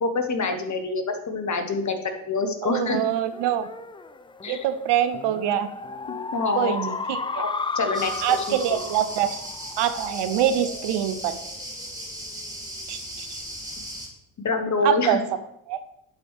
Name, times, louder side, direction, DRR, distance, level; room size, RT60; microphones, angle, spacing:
voice 1, 0.0-3.0 4.4-4.6 6.1-6.9 7.4-7.5 7.7-8.6 14.4-15.2, left 3 dB, 35° left, 6 dB, 1.3 m, -26 dB
voice 2, 2.6-3.7 4.5-5.7 6.6-7.4 8.2-9.4 9.8-11.3 12.9-13.4 14.8-15.2 15.7-15.8, right 10 dB, 60° right, 11 dB, 0.7 m, -24 dB
Drunk Fairy, 3.0-11.8, left 4 dB, 10° left, 0.4 m, -35 dB
sound 1, 7.9-14.1, equal, 10° right, 2.7 m, -37 dB
11.0 x 4.6 x 3.3 m, 0.76 s
hypercardioid pair, 50°, 47 cm